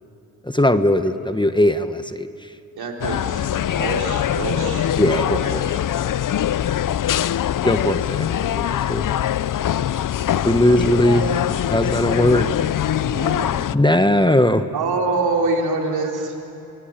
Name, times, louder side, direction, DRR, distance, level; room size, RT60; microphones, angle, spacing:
voice 1, 0.4-2.5 5.0-5.7 7.6-9.1 10.4-11.3 11.7-12.6 13.7-14.6, left 1 dB, 10° left, 10 dB, 1.2 m, -19 dB
voice 2, 2.8-4.9 5.3-5.8 10.6-11.7 13.0-13.5 14.7-16.4, right 3 dB, 80° right, 0 dB, 4.1 m, -26 dB
sound 1, 3.0-13.8, left 10 dB, 60° left, 0.6 m, -23 dB
27.5 x 22.0 x 8.9 m, 2.8 s
cardioid pair, 55°, 37 cm